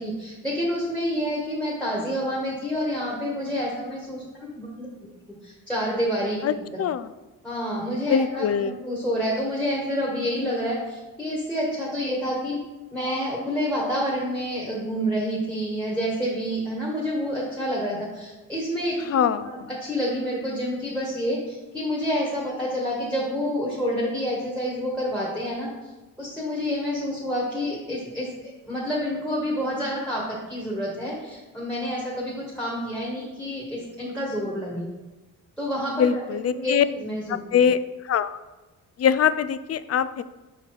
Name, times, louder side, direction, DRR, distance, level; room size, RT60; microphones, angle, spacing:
voice 1, 0.0-4.2 4.5-4.9 5.4-6.8 7.4-12.6 12.9-25.7 26.2-34.9 35.6-37.6, equal, 5° left, -4 dB, 1.7 m, -28 dB
voice 2, 8.1-8.7 19.1-19.5 36.0-36.8 37.5-37.8 38.1-38.4 39.0-40.2, left 8 dB, 45° left, 14 dB, 0.4 m, -22 dB
5.1 x 4.2 x 4.8 m, 1.1 s
cardioid pair, 65°, 36 cm